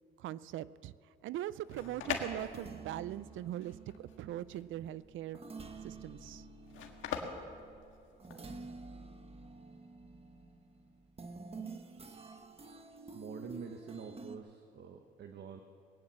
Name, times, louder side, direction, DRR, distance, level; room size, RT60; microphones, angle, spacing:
voice 1, 0.2-0.9 1.2-5.4 5.8-6.5, right 13 dB, 80° right, 18 dB, 0.5 m, -41 dB
sound 1, 1.4-8.5, left 7 dB, 85° left, 1.7 m, -43 dB
sound 2, 1.8-14.4, right 3 dB, 30° right, 1.2 m, -50 dB
voice 2, 13.1-15.6, right 6 dB, 60° right, 6 dB, 1.1 m, -46 dB
20.0 x 9.8 x 7.3 m, 2.6 s
cardioid pair, 90°, 20 cm